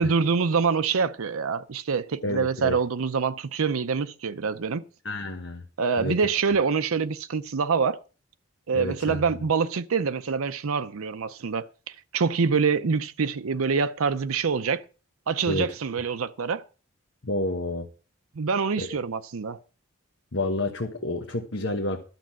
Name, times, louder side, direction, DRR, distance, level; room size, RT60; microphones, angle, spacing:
voice 1, 0.0-4.8 5.8-8.0 8.7-14.8 15.3-16.6 18.4-19.6, right 5 dB, 90° right, 0.6 m, -25 dB
voice 2, 2.2-2.8 5.0-5.6 6.0-6.2 8.7-9.2 15.4-15.7 17.2-17.9 18.8-18.9 20.3-22.0, left 1 dB, 65° left, 1.2 m, -29 dB
12.0 x 6.1 x 7.4 m
head